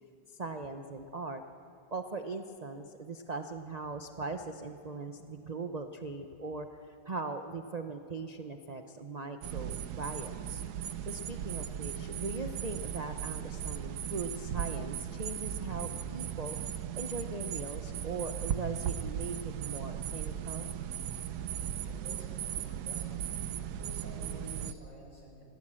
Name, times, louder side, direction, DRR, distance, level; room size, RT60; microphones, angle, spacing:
voice 1, 0.3-1.4 1.9-10.6 11.0-16.6 17.0-20.7, right 3 dB, 45° right, 6 dB, 0.5 m, -40 dB
sound 1, 9.4-24.7, right 9 dB, 65° right, 1.2 m, -37 dB
voice 2, 21.9-23.3 23.8-25.4, equal, 40° left, -1 dB, 6.6 m, -50 dB
25.5 x 17.5 x 7.6 m, 2.7 s
omnidirectional pair, 2.0 m